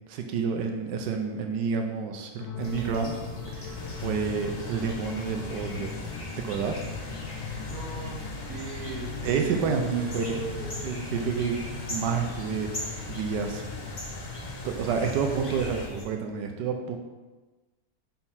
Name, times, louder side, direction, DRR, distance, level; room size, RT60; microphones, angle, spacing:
voice 1, 0.1-3.2 3.5-5.9 6.4-6.8 9.2-10.4 10.8-11.6 11.9-12.7 13.1-13.6 14.6-17.0, right 6 dB, 90° right, 4 dB, 1.3 m, -29 dB
sound 1, 2.4-14.0, left 7 dB, 90° left, 1.3 m, -40 dB
sound 2, 2.6-16.0, left 1 dB, 20° left, 1.1 m, -39 dB
sound 3, 3.8-15.9, left 3 dB, 50° left, 0.6 m, -44 dB
voice 2, 7.7-10.8, right 4 dB, 60° right, 1 dB, 1.4 m, -39 dB
6.2 x 4.5 x 5.6 m, 1.3 s
omnidirectional pair, 1.8 m